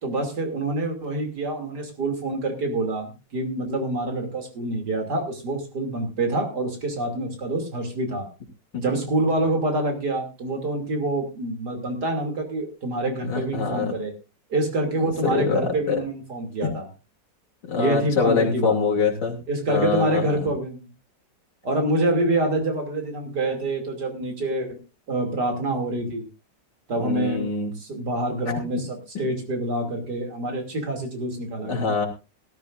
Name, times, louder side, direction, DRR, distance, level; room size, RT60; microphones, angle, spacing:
voice 1, 0.0-8.3 8.7-14.1 14.5-16.9 17.8-18.8 19.5-20.9 21.6-24.8 25.1-26.3 26.9-27.4 27.8-32.0, right 2 dB, 65° right, 4 dB, 3.4 m, -26 dB
voice 2, 13.3-13.9 15.2-16.0 16.6-16.7 17.7-19.4 19.7-20.5 27.0-27.7 31.6-32.1, left 5 dB, 75° left, 0 dB, 3.5 m, -24 dB
18.0 x 13.5 x 2.6 m, 0.29 s
omnidirectional pair, 1.9 m